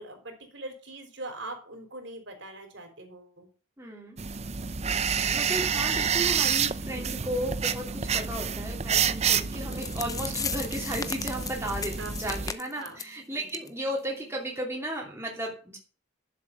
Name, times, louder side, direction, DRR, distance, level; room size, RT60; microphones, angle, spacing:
voice 1, 0.0-3.5 12.0-12.1 12.8-13.0 13.3-13.6, right 2 dB, 65° right, 5 dB, 3.9 m, -41 dB
voice 2, 3.8-4.2 5.3-15.8, right 1 dB, 15° right, -2 dB, 2.8 m, -34 dB
sound 1, 4.2-12.5, right 7 dB, 35° right, 0.6 m, -29 dB
sound 2, 9.7-13.1 13.5-13.7 14.0-14.1 14.6-14.7, left 6 dB, 20° left, 0.7 m, -36 dB
11.0 x 7.6 x 7.0 m, 0.40 s
head